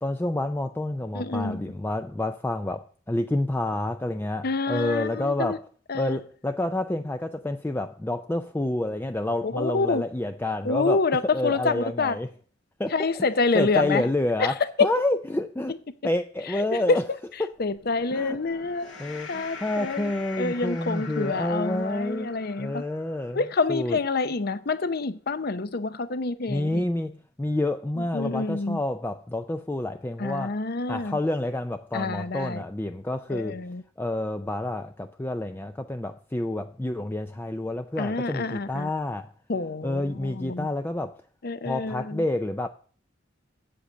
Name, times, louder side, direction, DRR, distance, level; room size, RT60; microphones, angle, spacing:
voice 1, 0.0-5.7 5.9-12.3 12.8-13.3 13.5-15.8 16.0-17.0 17.4-17.5 18.1-18.4 19.0-23.4 23.7-24.0 26.5-30.6 30.9-33.6 34.0-39.3 39.8-41.2 41.6-42.7, left 1 dB, 10° left, 0.4 m, -29 dB
voice 2, 1.1-1.7 4.4-5.6 5.9-6.2 9.4-10.0 10.6-12.2 12.9-14.0 14.4-14.9 16.6-17.0 17.6-18.9 19.3-20.1 20.4-22.8 23.3-26.9 28.0-28.8 30.2-31.2 31.9-32.6 33.3-33.8 38.0-38.9 39.5-40.7 41.4-42.2, left 3 dB, 55° left, 0.7 m, -27 dB
sound 1, 17.6-24.1, left 5 dB, 75° left, 1.8 m, -43 dB
8.3 x 7.7 x 6.6 m
head